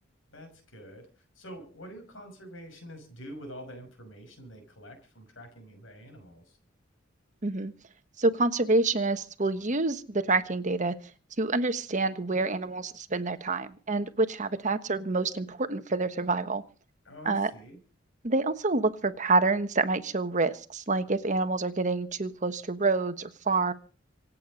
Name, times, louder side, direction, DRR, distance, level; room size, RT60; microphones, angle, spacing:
voice 1, 0.3-6.6 17.0-17.8, equal, 85° left, 4 dB, 5.9 m, -46 dB
voice 2, 7.4-7.7 8.2-10.9 11.4-16.6 17.2-17.5 18.2-23.7, right 3 dB, 40° right, 10 dB, 1.3 m, -27 dB
26.0 x 8.7 x 5.3 m, 0.38 s
head